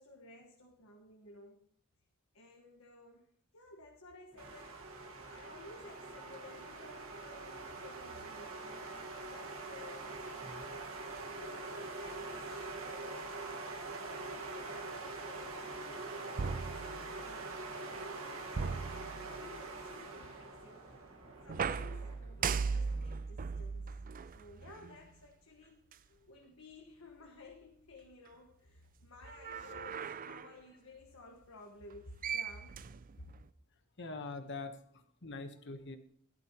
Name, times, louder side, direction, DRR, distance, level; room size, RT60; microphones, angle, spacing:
voice 1, 0.0-1.6 2.3-4.8 5.3-8.8 9.2-10.2 11.4-13.6 14.0-17.8 18.1-21.0 21.4-24.0 24.2-32.8 33.2-33.3, left 2 dB, 75° left, 1 dB, 1.5 m, -55 dB
sound 1, 4.3-23.1, equal, 20° left, 1.5 m, -60 dB
sound 2, 4.4-22.1, right 3 dB, 70° right, 1.7 m, -44 dB
sound 3, 16.4-17.5 18.5-19.7 21.5-25.1 25.9-26.0 29.2-30.6 31.9-32.0 32.2-33.5, right 5 dB, 40° right, 0.4 m, -38 dB
voice 2, 34.0-36.0, left 3 dB, 55° left, 7 dB, 1.2 m, -44 dB
16.0 x 11.5 x 3.0 m, 0.64 s
head